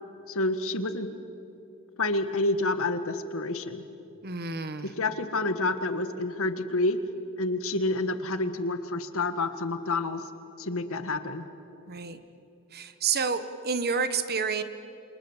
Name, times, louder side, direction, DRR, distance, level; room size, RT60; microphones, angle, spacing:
voice 1, 0.3-1.1 2.0-3.8 5.0-7.0 7.4-10.2 10.6-11.4, left 2 dB, 65° left, 9 dB, 1.6 m, -28 dB
voice 2, 4.2-4.9 11.9-12.2 12.7-14.6, right 5 dB, 45° right, 11 dB, 1.3 m, -29 dB
28.0 x 27.0 x 7.3 m, 2.8 s
head